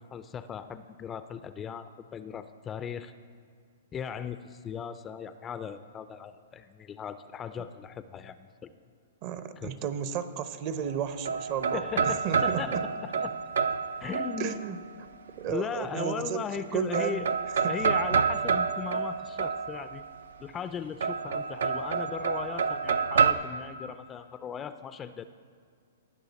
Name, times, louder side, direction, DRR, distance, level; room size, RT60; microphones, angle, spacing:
voice 1, 0.0-3.1 3.9-8.7 9.6-9.9 11.7-13.3 14.0-14.8 15.5-17.3 17.7-20.0 20.4-25.2, left 7 dB, 20° left, 12 dB, 0.4 m, -38 dB
voice 2, 9.2-12.8 14.4-14.8 15.4-16.4 16.7-17.2, right 8 dB, 40° right, 11 dB, 0.7 m, -33 dB
sound 1, 10.8-14.8 16.0-16.6 16.9-20.1 21.0-23.3, right 5 dB, 75° right, 0.5 m, -28 dB
19.0 x 6.6 x 4.1 m, 2.1 s
hypercardioid pair, 135°, 0 cm